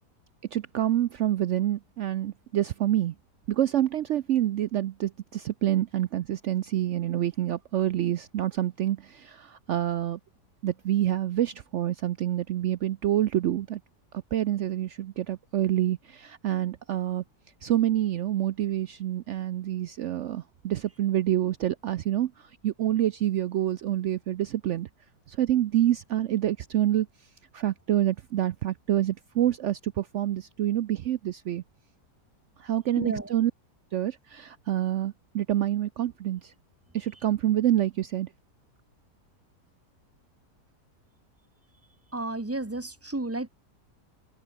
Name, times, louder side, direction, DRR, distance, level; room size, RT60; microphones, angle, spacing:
voice 1, 0.5-3.1 3.5-10.2 10.6-13.8 14.1-17.2 17.6-24.9 25.3-27.1 27.5-31.6 32.6-33.5 33.9-36.5 36.9-38.3, right 12 dB, 75° right, 0.6 m, -27 dB
voice 2, 33.0-33.3 42.1-43.5, right 2 dB, 10° right, 0.7 m, -32 dB
omnidirectional pair, 1.8 m